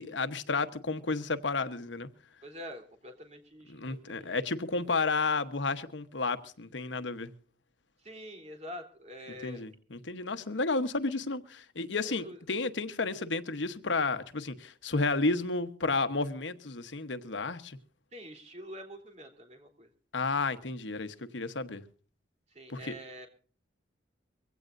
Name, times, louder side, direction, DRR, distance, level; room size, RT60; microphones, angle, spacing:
voice 1, 0.0-2.1 3.7-7.3 9.4-17.8 20.1-21.8 22.7-22.9, left 3 dB, 80° left, 1.2 m, -32 dB
voice 2, 2.4-4.3 8.0-9.6 12.0-12.4 18.1-19.9 22.5-23.3, equal, 35° right, 3.6 m, -46 dB
23.5 x 17.0 x 2.6 m
head